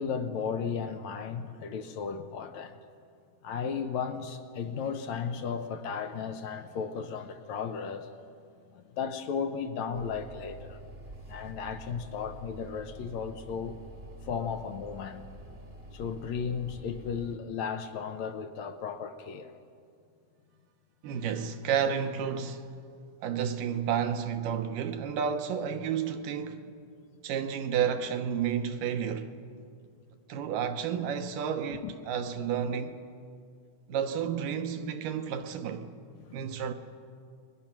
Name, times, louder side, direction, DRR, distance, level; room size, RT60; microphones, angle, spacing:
voice 1, 0.0-2.8 3.4-8.1 8.7-10.8 11.3-13.8 14.2-15.3 15.9-19.5 31.8-31.9 36.2-36.7, left 6 dB, 70° left, 1.8 m, -35 dB
sound 1, 9.9-17.3, equal, 25° right, 1.2 m, -47 dB
voice 2, 21.0-22.7 23.2-26.7 27.2-29.3 30.3-33.0 33.9-35.9 36.3-36.7, right 8 dB, 75° right, 2.5 m, -31 dB
29.0 x 22.0 x 6.0 m
omnidirectional pair, 4.2 m